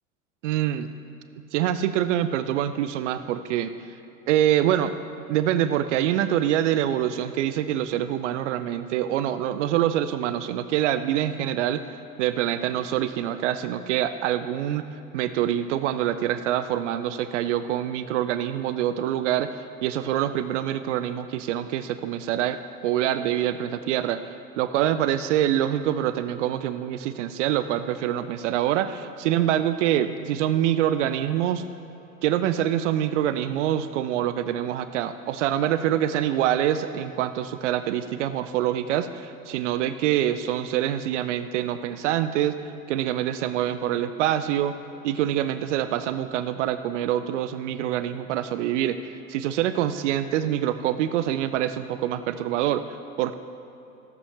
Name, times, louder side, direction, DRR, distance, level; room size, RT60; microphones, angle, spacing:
voice 1, 0.4-0.9 1.5-3.7 4.3-4.9 5.3-11.8 12.2-24.2 24.6-31.7 32.2-42.6 42.9-44.7 45.0-53.3, right 11 dB, 60° right, 11 dB, 0.5 m, -25 dB
14.0 x 8.2 x 3.3 m, 2.9 s
figure-of-eight pair, 80°, 41 cm